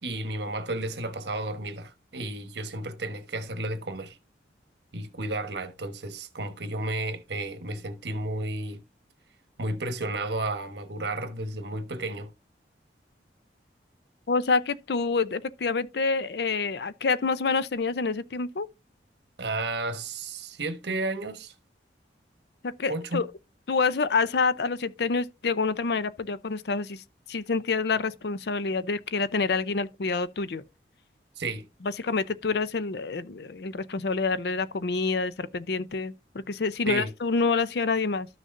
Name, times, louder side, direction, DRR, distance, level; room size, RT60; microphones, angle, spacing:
voice 1, 0.0-4.2 4.9-8.8 9.6-12.3 19.4-21.5 22.9-23.2 31.4-31.7 36.9-37.1, right 2 dB, 70° right, 1.2 m, -32 dB
voice 2, 14.3-18.7 22.6-23.3 23.7-27.0 27.3-30.6 31.8-36.1 36.5-38.3, left 4 dB, 65° left, 0.5 m, -27 dB
13.0 x 6.4 x 2.6 m
head